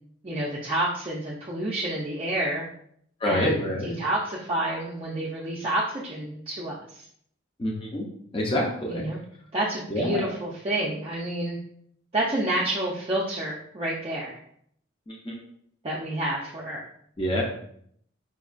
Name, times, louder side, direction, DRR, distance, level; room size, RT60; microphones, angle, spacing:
voice 1, 0.2-2.7 3.2-7.0 8.9-9.2 9.5-11.6 12.1-14.4 15.8-16.8, right 1 dB, 25° right, -5 dB, 0.4 m, -29 dB
voice 2, 3.2-3.9 7.6-8.0 8.3-9.0 9.9-10.2 15.1-15.3 17.2-17.4, left 1 dB, 25° left, -1 dB, 0.5 m, -26 dB
5.1 x 2.2 x 2.4 m, 0.67 s
head